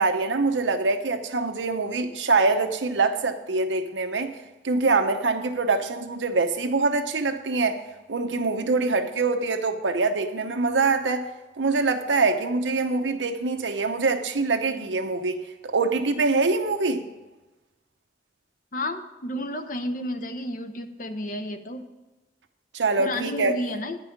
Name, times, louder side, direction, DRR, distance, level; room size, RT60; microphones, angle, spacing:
voice 1, 0.0-4.4 4.6-7.8 8.1-11.3 11.6-17.1 22.7-23.5, right 3 dB, 90° right, 7 dB, 0.8 m, -24 dB
voice 2, 18.7-21.8 23.0-24.0, left 1 dB, 45° left, 8 dB, 0.7 m, -31 dB
9.8 x 5.5 x 7.1 m, 1.1 s
head